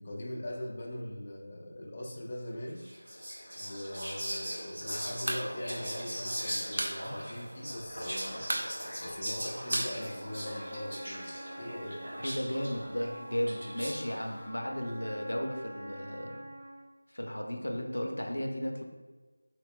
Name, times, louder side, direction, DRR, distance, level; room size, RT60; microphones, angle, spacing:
voice 1, 0.0-2.9 3.6-8.5 9.0-11.3 11.6-12.1, left 1 dB, 30° left, -2 dB, 0.3 m, -41 dB
Whispering, 2.8-14.2, equal, 75° right, 1.2 m, -39 dB
sound 1, 5.2-5.5 5.7-5.8 6.1-7.0 7.3-7.4 7.7-8.1 8.4-10.8, right 1 dB, 55° right, 0.4 m, -35 dB
Trumpet, 9.9-16.9, right 1 dB, 20° right, 1.0 m, -47 dB
voice 2, 12.2-16.4 17.1-18.8, equal, 85° left, 2 dB, 0.5 m, -34 dB
3.7 x 2.9 x 2.2 m, 1.3 s
figure-of-eight pair, 170°, 0 cm